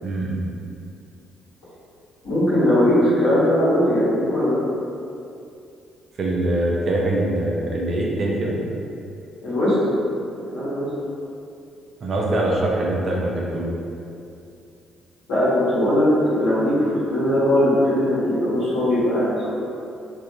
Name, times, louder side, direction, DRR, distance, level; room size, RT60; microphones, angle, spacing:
voice 1, 0.0-0.5 6.2-8.6 12.0-13.7, right 1 dB, 45° right, -3 dB, 0.5 m, -23 dB
voice 2, 2.2-4.6 9.4-10.0 10.5-10.9 15.3-19.5, left 1 dB, 60° left, -11 dB, 1.0 m, -19 dB
2.5 x 2.4 x 2.7 m, 2.6 s
figure-of-eight pair, 45°, 0 cm